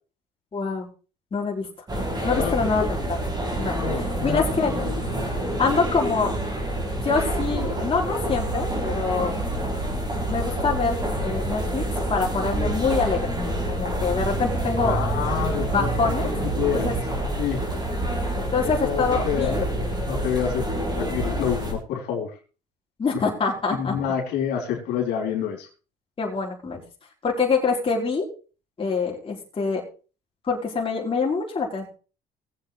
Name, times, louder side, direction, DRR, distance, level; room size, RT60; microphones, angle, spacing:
voice 1, 0.5-0.9 1.3-1.7 2.2-3.2 3.6-3.7 4.2-4.7 5.6-6.3 7.0-9.3 10.3-11.8 12.1-13.3 13.7-15.0 15.7-16.3 16.7-16.9 18.5-19.6 23.0-24.0 26.2-26.8 27.2-28.3 28.8-29.8 30.4-31.9, left 4 dB, 30° left, -2 dB, 4.3 m, -25 dB
sound 1, 1.9-21.7, right 1 dB, 25° right, 4.6 m, -27 dB
voice 2, 2.3-2.9 3.8-5.2 14.8-16.9 17.4-17.6 18.8-19.5 20.0-20.6 21.0-22.3 23.1-23.2 23.7-25.7, left 8 dB, 85° left, -1 dB, 3.4 m, -28 dB
20.5 x 7.9 x 3.3 m, 0.35 s
cardioid pair, 110°, 17 cm